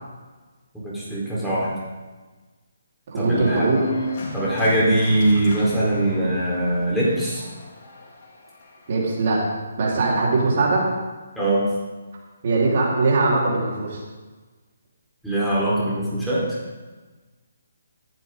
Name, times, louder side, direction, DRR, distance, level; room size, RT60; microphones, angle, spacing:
voice 1, 0.7-1.7 3.2-3.7 4.3-7.4 11.4-11.6 15.2-16.4, right 1 dB, ahead, -8 dB, 4.3 m, -22 dB
voice 2, 3.1-3.8 8.9-9.4 9.8-10.9 12.4-14.0, right 3 dB, 45° right, -4 dB, 4.4 m, -21 dB
Organ, 3.3-9.0, left 1 dB, 35° left, 4.4 m, -34 dB
15.0 x 14.0 x 3.9 m, 1.3 s
figure-of-eight pair, 140°, 0 cm